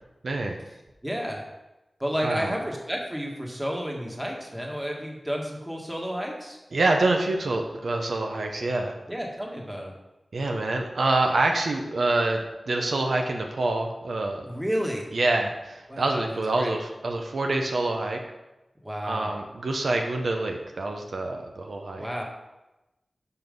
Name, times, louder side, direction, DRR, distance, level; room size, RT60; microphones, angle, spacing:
voice 1, 0.2-0.6 2.2-2.5 6.7-8.9 10.3-14.5 15.1-18.2 19.0-22.1, right 2 dB, 75° right, 3 dB, 0.8 m, -26 dB
voice 2, 1.0-1.4 2.0-6.6 9.1-9.9 14.5-15.0 15.9-16.8 18.8-19.4 22.0-22.2, equal, 10° right, -1 dB, 1.6 m, -31 dB
6.1 x 5.7 x 5.3 m, 0.99 s
wide cardioid pair, 80°, 0 cm